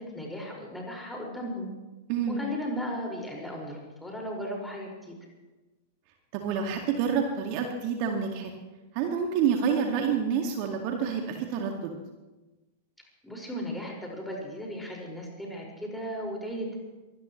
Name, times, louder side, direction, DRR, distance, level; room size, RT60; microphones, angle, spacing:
voice 1, 0.0-1.7 2.3-5.2 13.2-16.8, equal, 5° left, -1 dB, 5.5 m, -36 dB
voice 2, 2.1-2.4 6.3-8.5 8.9-11.9, right 7 dB, 45° right, 2 dB, 2.1 m, -28 dB
23.5 x 19.0 x 3.2 m, 1.1 s
figure-of-eight pair, 95°, 0 cm